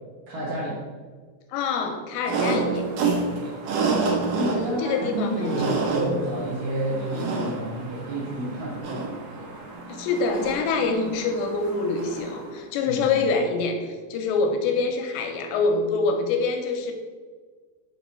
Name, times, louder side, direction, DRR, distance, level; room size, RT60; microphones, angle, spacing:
voice 1, 0.3-0.8 3.3-3.5 4.3-9.5 12.9-13.1, right 1 dB, 70° right, -7 dB, 2.2 m, -30 dB
voice 2, 1.5-2.8 4.5-5.6 9.9-16.9, left 4 dB, 85° left, 4 dB, 2.8 m, -25 dB
sound 1, 2.2-12.5, right 4 dB, 90° right, 1.9 m, -29 dB
6.4 x 3.1 x 5.3 m, 1.5 s
omnidirectional pair, 5.1 m